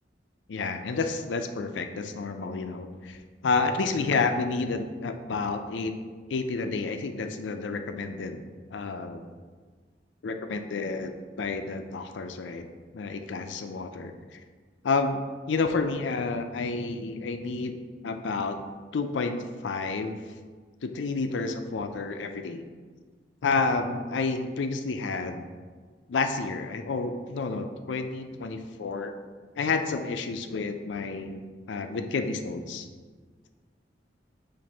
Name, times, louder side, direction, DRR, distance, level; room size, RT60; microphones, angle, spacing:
voice 1, 0.5-3.2 3.4-5.9 6.3-8.4 8.7-9.3 10.2-12.7 12.9-14.4 14.8-15.2 15.5-17.8 18.0-18.6 18.9-20.2 20.8-22.6 23.4-25.5 26.1-29.1 29.6-31.4 31.7-32.9, left 4 dB, 85° left, 7 dB, 0.4 m, -30 dB
7.5 x 2.6 x 5.3 m, 1.5 s
head